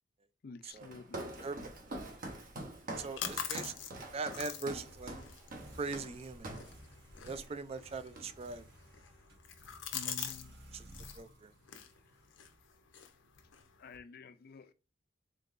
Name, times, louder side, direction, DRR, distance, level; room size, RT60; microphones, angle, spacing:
voice 1, 0.4-1.5 2.3-2.4 9.9-10.5 13.8-14.7, left 4 dB, 55° left, 0.4 m, -50 dB
Walk footsteps, 0.8-6.8 7.2-7.5 7.8-8.6, right 1 dB, 50° right, 0.9 m, -45 dB
sound 1, 2.7-10.5 10.7-11.2 11.6-14.0, left 9 dB, 85° left, 0.7 m, -45 dB
voice 2, 3.0-5.2 5.7-6.5 7.3-8.7 10.1-10.3 10.7-10.9 11.1-11.5, right 4 dB, 30° right, 0.3 m, -41 dB
sound 2, 3.3-13.0, equal, 80° right, 1.7 m, -57 dB
3.7 x 3.7 x 2.5 m
head